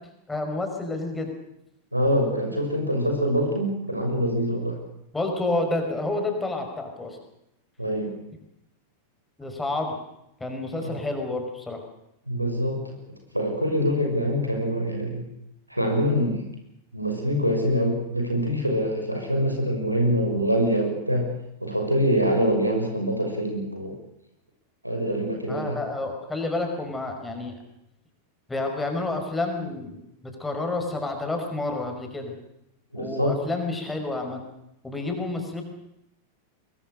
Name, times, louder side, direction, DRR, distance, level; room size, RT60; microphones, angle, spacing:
voice 1, 0.3-1.3 5.1-7.2 9.4-10.0 10.4-11.8 25.5-27.6 28.5-32.4 33.0-34.4 34.8-35.6, left 2 dB, 10° left, 3 dB, 5.5 m, -29 dB
voice 2, 1.9-4.8 7.8-8.1 10.8-11.0 12.3-13.0 13.3-15.3 15.7-16.4 16.9-21.3 21.6-23.9 24.8-25.8 32.9-33.4, equal, 90° right, 2 dB, 6.2 m, -25 dB
23.0 x 22.5 x 6.5 m, 0.82 s
figure-of-eight pair, 90°, 0 cm